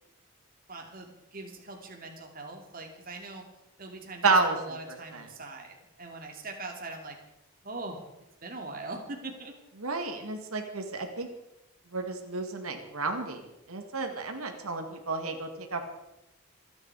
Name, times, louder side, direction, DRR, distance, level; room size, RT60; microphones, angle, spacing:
voice 1, 0.7-3.4 3.8-7.2 7.6-8.0 8.4-9.5, right 2 dB, 40° right, 2 dB, 2.5 m, -41 dB
voice 2, 4.2-5.2 9.8-11.3 11.9-13.4 13.7-15.8, right 3 dB, 80° right, 4 dB, 2.2 m, -31 dB
27.0 x 9.8 x 4.8 m, 0.91 s
head